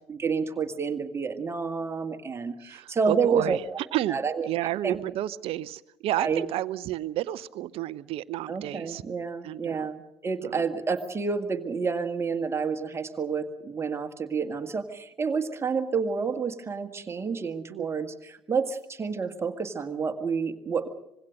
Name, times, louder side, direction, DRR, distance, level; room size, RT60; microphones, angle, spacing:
voice 1, 0.1-3.6 4.1-4.5 4.8-5.0 6.2-6.4 8.5-20.9, right 5 dB, 20° right, 7 dB, 1.8 m, -29 dB
voice 2, 2.6-3.6 3.9-4.2 4.5-9.0 9.4-9.9 10.4-10.6 17.7-17.9, right 14 dB, 45° right, 19 dB, 0.7 m, -31 dB
25.0 x 21.0 x 6.5 m, 0.88 s
figure-of-eight pair, 65°, 13 cm